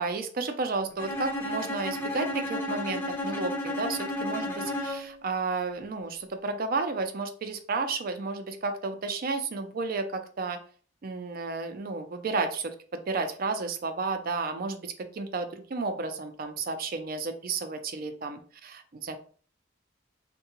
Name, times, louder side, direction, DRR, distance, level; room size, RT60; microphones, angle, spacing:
voice 1, 0.0-10.6 11.0-19.2, right 4 dB, 50° right, 8 dB, 0.4 m, -32 dB
Bowed string instrument, 1.0-5.2, left 1 dB, 10° left, 0.5 m, -33 dB
3.6 x 2.2 x 2.8 m, 0.43 s
head